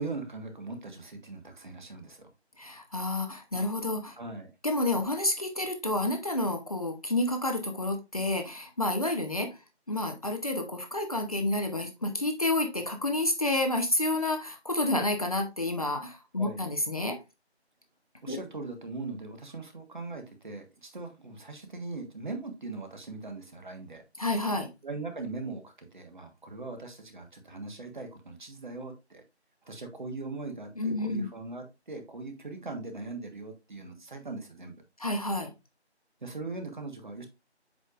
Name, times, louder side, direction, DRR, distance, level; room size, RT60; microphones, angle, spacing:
voice 1, 0.0-2.3 4.2-4.5 16.4-16.6 18.2-24.0 24.8-29.2 29.6-34.8 36.2-37.3, right 3 dB, 45° right, 6 dB, 1.4 m, -40 dB
voice 2, 2.6-4.2 4.6-9.6 9.9-17.2 18.3-18.4 24.2-24.7 30.8-31.3 35.0-35.5, left 2 dB, 35° left, 4 dB, 0.8 m, -29 dB
7.8 x 5.0 x 2.4 m, 0.25 s
figure-of-eight pair, 165°, 34 cm